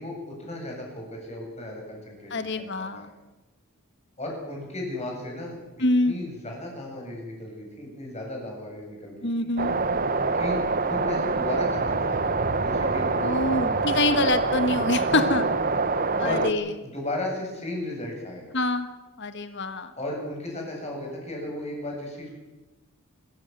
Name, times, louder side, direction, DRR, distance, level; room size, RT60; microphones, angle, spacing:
voice 1, 0.0-3.1 4.2-5.6 6.0-9.5 10.3-12.2 12.5-13.7 15.0-15.4 16.2-16.5 16.8-18.5 20.0-22.3, left 1 dB, 30° left, 0 dB, 7.6 m, -35 dB
voice 2, 2.3-3.1 5.8-6.1 9.2-9.7 13.2-15.5 16.2-16.7 18.5-18.9 19.2-19.9, left 2 dB, 55° left, 10 dB, 1.8 m, -25 dB
sound 1, 9.6-16.5, right 3 dB, 40° right, 1.2 m, -25 dB
26.0 x 14.5 x 9.3 m, 1.1 s
head